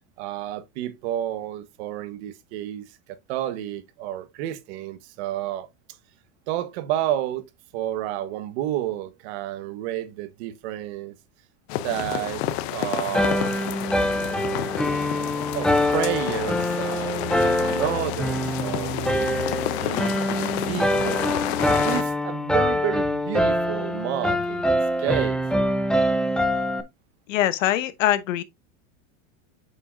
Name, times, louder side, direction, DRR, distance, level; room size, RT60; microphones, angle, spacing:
voice 1, 0.2-5.7 6.5-7.5 7.7-11.1 11.8-13.5 15.5-19.4 19.8-21.3 21.8-25.4, right 13 dB, 60° right, 1.1 m, -30 dB
sound 1, 11.7-22.0, left 13 dB, 60° left, 0.8 m, -30 dB
sound 2, 13.1-26.8, equal, ahead, 0.4 m, -24 dB
voice 2, 27.3-28.4, left 13 dB, 80° left, 1.0 m, -22 dB
8.3 x 5.6 x 2.5 m
supercardioid pair, 140°, 38 cm